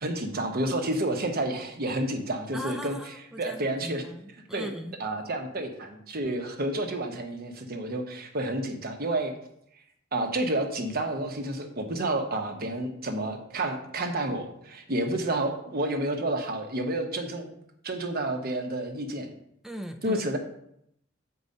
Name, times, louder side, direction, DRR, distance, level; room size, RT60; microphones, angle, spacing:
voice 1, 0.0-3.0 3.4-4.0 4.5-4.7 5.0-9.3 10.1-17.5 17.8-19.3 20.0-20.4, right 1 dB, 50° right, 4 dB, 1.0 m, -30 dB
voice 2, 2.5-5.0 19.6-20.3, equal, ahead, 5 dB, 0.5 m, -39 dB
7.0 x 4.7 x 5.3 m, 0.75 s
head